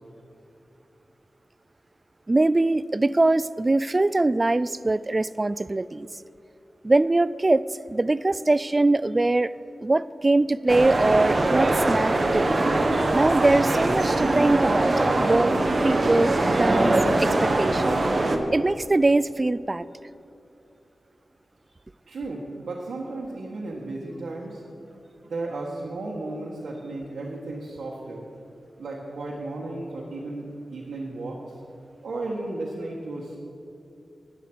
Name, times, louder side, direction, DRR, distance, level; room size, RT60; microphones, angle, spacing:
voice 1, 2.3-6.1 6.8-9.5 9.8-12.6 13.0-14.9 15.2-15.5 15.8-18.0 18.5-19.8, right 2 dB, 30° right, 18 dB, 0.3 m, -22 dB
sound 1, 10.7-18.4, right 2 dB, 45° right, 1.2 m, -22 dB
voice 2, 22.1-24.6 25.2-28.3 28.8-31.4 32.0-33.4, right 2 dB, 80° right, -4 dB, 1.5 m, -34 dB
11.0 x 10.5 x 6.2 m, 2.6 s
wide cardioid pair, 75°, 0 cm